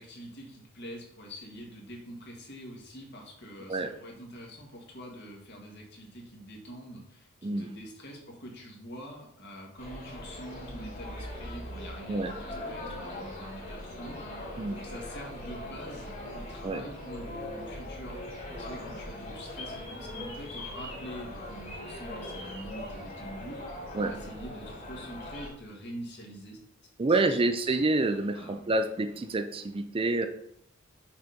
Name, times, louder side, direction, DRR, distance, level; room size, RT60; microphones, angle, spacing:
voice 1, 0.0-26.6 27.4-27.8 28.3-28.6, equal, 55° left, -1 dB, 2.0 m, -45 dB
voice 2, 7.4-7.7 12.1-12.3 14.6-14.8 16.6-16.8 23.9-24.1 27.0-30.3, right 2 dB, 25° right, 8 dB, 0.4 m, -28 dB
sound 1, 9.8-25.5, left 1 dB, 40° left, 3.1 m, -40 dB
7.0 x 4.3 x 5.1 m, 0.72 s
head